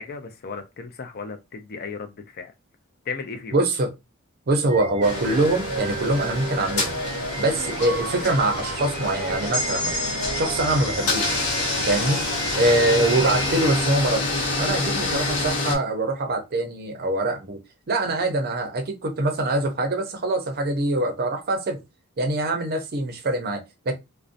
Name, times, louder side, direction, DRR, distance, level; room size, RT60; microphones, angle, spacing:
voice 1, 0.0-2.5 3.1-3.6 11.9-12.1, left 5 dB, 45° left, 0.4 m, -35 dB
voice 2, 3.5-3.9 4.5-7.0 7.4-9.9 10.3-11.4 11.9-12.2 12.6-17.6 17.9-21.8 22.2-23.9, right 2 dB, 45° right, 0.5 m, -24 dB
sound 1, 4.7-14.0, right 3 dB, 85° right, 0.6 m, -34 dB
sound 2, 5.0-15.7, left 2 dB, 90° left, 1.0 m, -27 dB
sound 3, 9.5-13.3, left 1 dB, 20° left, 0.9 m, -34 dB
2.6 x 2.0 x 2.4 m
head